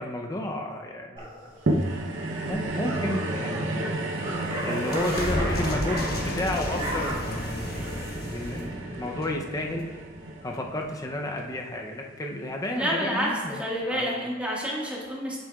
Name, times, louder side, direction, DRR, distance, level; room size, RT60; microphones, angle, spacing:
voice 1, 0.0-1.3 1.7-1.8 2.4-3.9 4.6-9.9 10.4-14.1, left 1 dB, 20° left, 1 dB, 0.6 m, -32 dB
sound 1, 1.2-1.6 2.5-6.4 6.6-7.1, equal, 30° right, 2.0 m, -35 dB
sound 2, 1.7-12.1 12.8-12.9, right 2 dB, 75° right, 0.7 m, -32 dB
sound 3, 3.8-10.2, left 1 dB, 50° left, 1.1 m, -33 dB
voice 2, 12.7-15.4, equal, 5° right, -5 dB, 1.6 m, -29 dB
8.5 x 7.8 x 2.3 m, 1.4 s
head